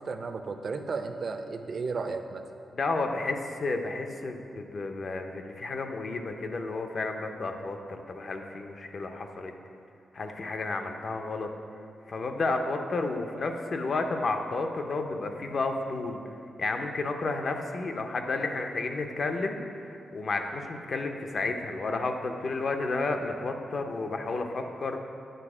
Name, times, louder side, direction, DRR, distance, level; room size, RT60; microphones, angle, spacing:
voice 1, 0.0-2.4, right 4 dB, 50° right, 7 dB, 0.5 m, -34 dB
voice 2, 2.7-9.5 10.1-11.5 12.1-16.2 16.6-25.0, left 3 dB, 50° left, 5 dB, 0.6 m, -31 dB
9.1 x 4.1 x 4.9 m, 2.6 s
wide cardioid pair, 120°, 0 cm